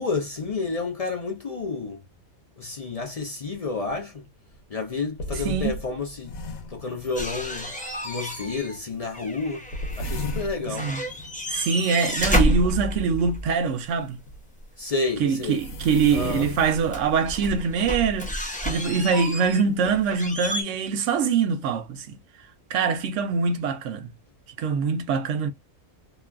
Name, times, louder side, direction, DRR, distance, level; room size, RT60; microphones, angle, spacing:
voice 1, 0.0-2.0 2.6-4.3 4.7-6.4 6.7-7.7 8.0-9.7 10.0-11.0 14.8-15.6 16.1-16.5, left 4 dB, 65° left, 0.3 m, -30 dB
sound 1, 3.9-4.0 4.5-4.6 5.2-7.7 9.7-12.1 14.3-14.4 15.4-17.6, left 1 dB, 80° left, 1.2 m, -35 dB
sound 2, 7.2-8.8 9.0-10.5 10.7-13.5 15.8-15.9 16.6-20.6, equal, 10° left, 0.5 m, -30 dB
voice 2, 10.7-11.0 11.5-14.2 15.2-22.2 22.7-24.1 24.6-25.5, right 5 dB, 70° right, 0.9 m, -24 dB
3.0 x 2.3 x 2.2 m
omnidirectional pair, 1.4 m